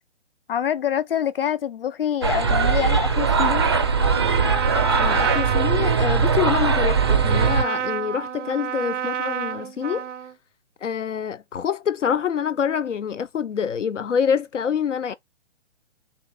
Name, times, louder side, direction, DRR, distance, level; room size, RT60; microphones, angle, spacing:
voice 1, 0.5-3.7, left 9 dB, 50° left, 0.7 m, -25 dB
sound 1, 2.2-7.6, right 5 dB, 25° right, 0.3 m, -20 dB
Trumpet, 3.2-10.3, right 8 dB, 80° right, 0.5 m, -30 dB
voice 2, 5.0-10.1 10.8-15.1, left 7 dB, 85° left, 0.5 m, -26 dB
4.2 x 2.8 x 3.3 m
figure-of-eight pair, 135°, 36 cm